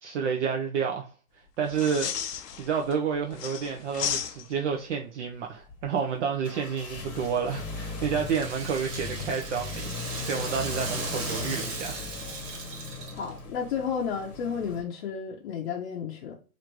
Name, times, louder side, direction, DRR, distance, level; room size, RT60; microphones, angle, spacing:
voice 1, 0.0-2.1 2.6-12.0, right 6 dB, 50° right, 0.6 m, -30 dB
sound 1, 1.7-2.9 3.3-4.7 7.2-7.6, left 8 dB, 90° left, 0.7 m, -34 dB
sound 2, 5.6-14.8, left 3 dB, 20° left, 0.9 m, -38 dB
Rattle (instrument), 7.2-13.4, right 4 dB, 30° right, 1.0 m, -38 dB
voice 2, 13.1-16.3, left 7 dB, 45° left, 0.7 m, -32 dB
3.1 x 2.5 x 4.4 m
hypercardioid pair, 140°, 46 cm